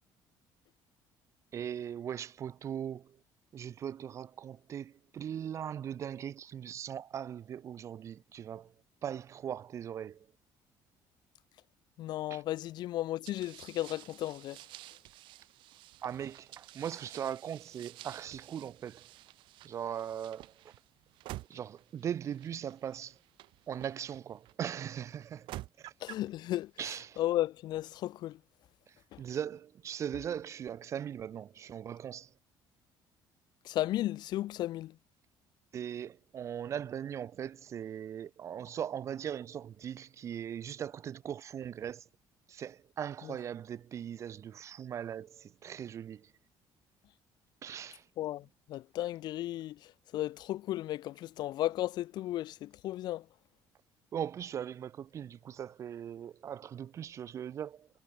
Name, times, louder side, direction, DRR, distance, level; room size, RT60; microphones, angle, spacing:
voice 1, 1.5-3.2 3.5-8.7 9.0-10.3 12.3-12.4 16.0-19.1 19.6-20.5 21.5-23.2 23.7-25.9 26.8-27.2 28.9-32.3 35.7-42.1 42.5-46.3 47.6-48.1 54.1-57.9, right 9 dB, 35° right, 0.3 m, -39 dB
voice 2, 12.0-14.6 26.0-26.7 27.2-28.4 29.1-29.2 33.7-34.9 48.2-49.8 50.1-53.2, left 14 dB, 60° left, 0.4 m, -34 dB
sound 1, 13.3-24.5 25.2-26.3, right 17 dB, 75° right, 1.1 m, -51 dB
cardioid pair, 140°, 8 cm